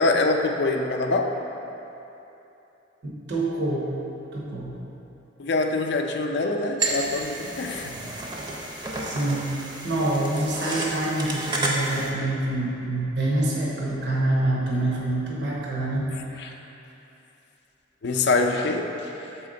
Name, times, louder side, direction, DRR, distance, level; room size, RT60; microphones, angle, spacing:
voice 1, 0.0-1.4 5.4-7.9 16.4-16.5 18.0-19.1, left 3 dB, 60° left, 4 dB, 0.4 m, -24 dB
voice 2, 3.0-3.9 4.3-4.7 9.0-9.5 9.8-16.1 16.3-16.6, right 1 dB, 65° right, -4 dB, 0.9 m, -26 dB
sound 1, 6.8-12.1, right 2 dB, 25° right, 0.6 m, -31 dB
6.5 x 4.2 x 3.8 m, 2.9 s
head